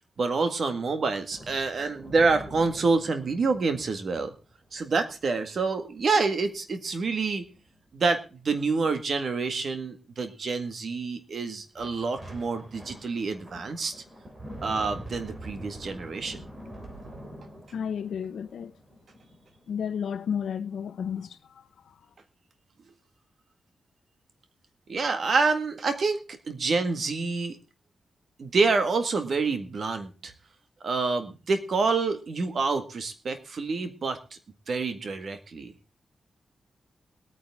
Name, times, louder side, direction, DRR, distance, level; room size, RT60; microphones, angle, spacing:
voice 1, 0.2-4.3 4.7-7.4 7.9-13.9 14.6-16.4 24.9-27.6 28.4-30.3 30.8-34.4 34.7-35.7, right 4 dB, 55° right, 1.8 m, -27 dB
sound 1, 1.3-5.5 5.9-6.1 6.5-6.7 7.3-7.8 11.8-19.7, right 1 dB, 30° right, 3.2 m, -45 dB
voice 2, 17.7-18.7 19.7-21.4, left 7 dB, 90° left, 0.8 m, -32 dB
21.0 x 9.3 x 3.6 m
wide cardioid pair, 140°, 0 cm